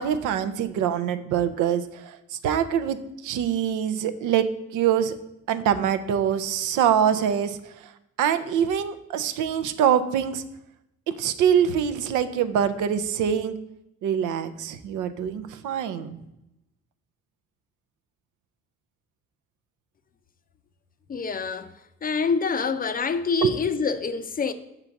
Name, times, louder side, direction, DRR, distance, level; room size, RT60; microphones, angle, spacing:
voice 1, 0.0-3.0 3.2-5.2 5.5-7.6 8.2-10.4 11.1-13.6 14.0-16.2 23.4-23.5, right 9 dB, 85° right, 0.6 m, -24 dB
voice 2, 21.1-21.7 22.0-24.5, left 5 dB, 30° left, 0.4 m, -26 dB
5.9 x 3.9 x 5.7 m
cardioid pair, 90°, 30 cm